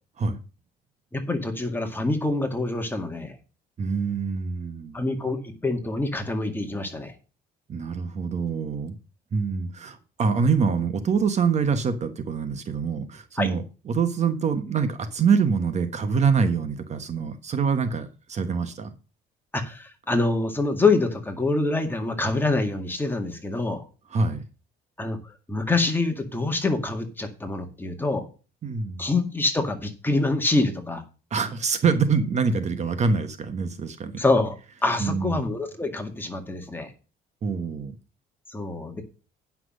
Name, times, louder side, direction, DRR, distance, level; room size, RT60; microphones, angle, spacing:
voice 1, 1.1-3.3 4.9-7.1 13.4-13.5 19.5-23.8 25.0-25.2 25.5-28.3 29.0-31.0 34.2-34.6 34.8-36.9 38.5-39.0, left 2 dB, 10° left, 4 dB, 2.0 m, -25 dB
voice 2, 3.8-5.0 7.7-9.0 9.3-18.9 24.1-24.4 28.6-29.1 31.3-34.2 35.0-35.5 37.4-37.9, right 5 dB, 40° right, 9 dB, 1.3 m, -25 dB
9.7 x 6.0 x 6.5 m, 0.35 s
cardioid pair, 110°, 17 cm